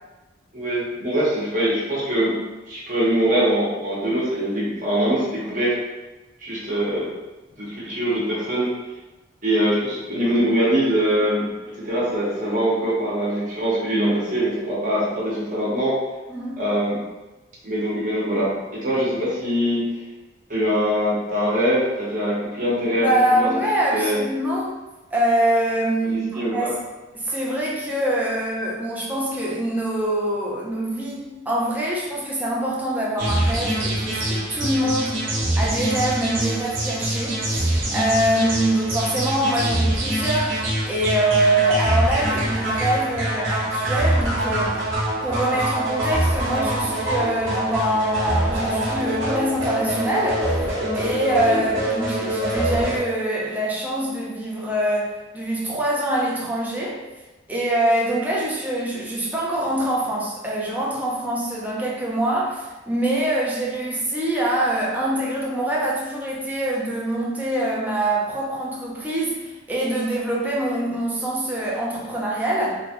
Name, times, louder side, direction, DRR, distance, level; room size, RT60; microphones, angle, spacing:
voice 1, 0.5-2.3 2.7-5.7 6.4-7.1 7.6-8.7 9.4-11.5 11.7-16.0 16.6-17.0 17.6-19.9 20.5-23.5 23.9-24.2 26.1-26.7 51.5-51.7, equal, 45° right, -7 dB, 1.1 m, -23 dB
voice 2, 16.3-16.6 23.0-24.7 25.1-26.8 27.1-35.3 35.5-44.7 45.2-50.5 50.9-57.0 57.5-72.8, right 1 dB, 10° right, -5 dB, 0.6 m, -24 dB
sound 1, 33.2-53.0, right 1 dB, 75° right, 1.0 m, -24 dB
3.2 x 2.2 x 2.9 m, 1.1 s
head